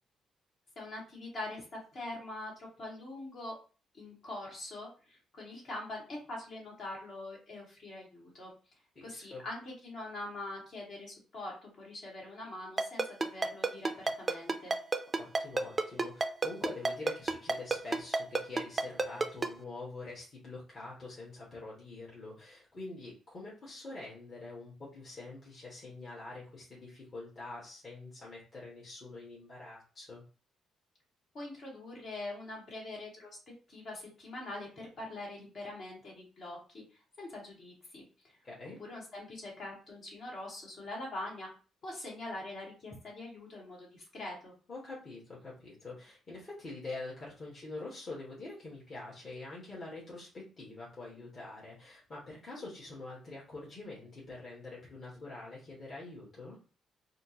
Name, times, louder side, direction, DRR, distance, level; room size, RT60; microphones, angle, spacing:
voice 1, 0.7-3.6 3.9-8.5 9.0-14.7 31.3-33.4 33.7-36.8 37.2-38.0 38.8-41.5 41.8-44.5, left 2 dB, 55° left, -2 dB, 1.6 m, -43 dB
voice 2, 8.9-9.4 15.2-30.2 38.4-38.8 44.7-56.6, left 2 dB, 40° left, -6 dB, 1.3 m, -45 dB
Ringtone, 12.8-19.5, right 3 dB, 25° right, 0.4 m, -28 dB
4.2 x 2.0 x 2.8 m, 0.36 s
cardioid pair, 90°, 0 cm